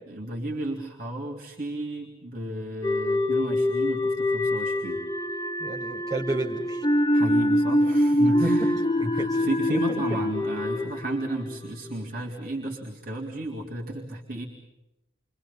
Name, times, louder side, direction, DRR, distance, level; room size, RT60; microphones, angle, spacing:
voice 1, 0.1-5.0 7.1-14.5, right 1 dB, 50° right, -2 dB, 3.5 m, -33 dB
sound 1, 2.8-12.0, left 1 dB, 20° left, 1.0 m, -25 dB
voice 2, 5.6-6.8 8.2-8.7 9.2-10.2, right 2 dB, 20° right, -4 dB, 5.4 m, -32 dB
29.5 x 25.0 x 5.6 m, 0.92 s
head